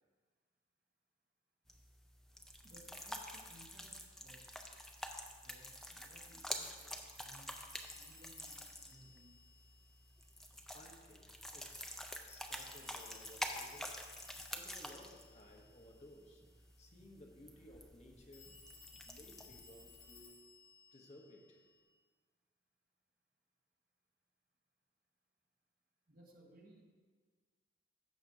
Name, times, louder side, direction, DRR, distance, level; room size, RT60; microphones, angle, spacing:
sound 1, 1.7-20.2, equal, ahead, 0.4 m, -48 dB
voice 1, 2.6-4.6 5.4-7.6 7.9-9.4 26.1-26.8, right 1 dB, 45° right, 0 dB, 1.1 m, -62 dB
Telephone, 7.7-10.4 12.5-16.1 18.3-21.8, left 5 dB, 50° left, 2.7 m, -60 dB
voice 2, 10.7-12.0 12.3-14.0 14.5-18.6 19.0-20.4 20.9-21.6, left 1 dB, 35° left, 1 dB, 0.9 m, -59 dB
14.5 x 5.9 x 2.7 m, 1.5 s
head